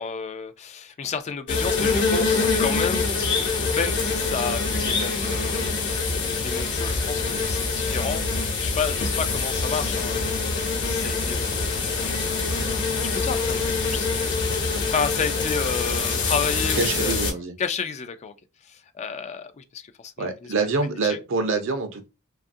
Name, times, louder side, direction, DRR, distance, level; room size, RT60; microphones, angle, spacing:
voice 1, 0.0-3.1 3.4-11.9 13.1-17.2 17.6-18.3 18.6-20.5 21.1-21.2, left 6 dB, 30° left, 0.3 m, -31 dB
sound 1, 1.5-17.3, left 4 dB, 55° left, 0.9 m, -25 dB
voice 2, 16.8-17.5 20.2-22.1, right 3 dB, 65° right, 0.6 m, -25 dB
2.7 x 2.4 x 2.6 m
head